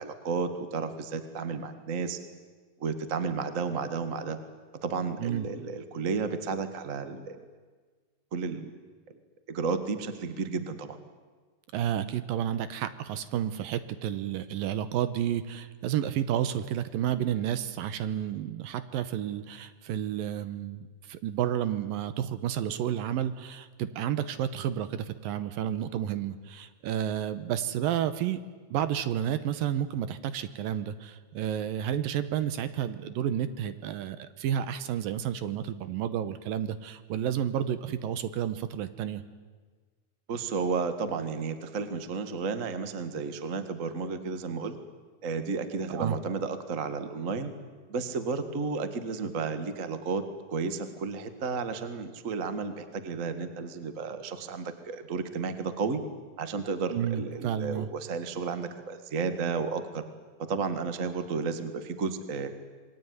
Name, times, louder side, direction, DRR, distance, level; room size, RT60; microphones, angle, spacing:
voice 1, 0.0-2.2 2.8-4.4 4.8-7.4 8.3-8.7 9.5-11.0 40.3-44.8 45.2-47.5 47.9-50.2 50.5-56.0 56.4-60.0 60.4-62.5, right 4 dB, 45° right, 10 dB, 1.0 m, -32 dB
voice 2, 11.7-28.4 28.7-39.2 45.9-46.2 56.9-57.9, right 10 dB, 75° right, 13 dB, 2.5 m, -31 dB
27.5 x 22.0 x 9.5 m, 1.4 s
omnidirectional pair, 4.5 m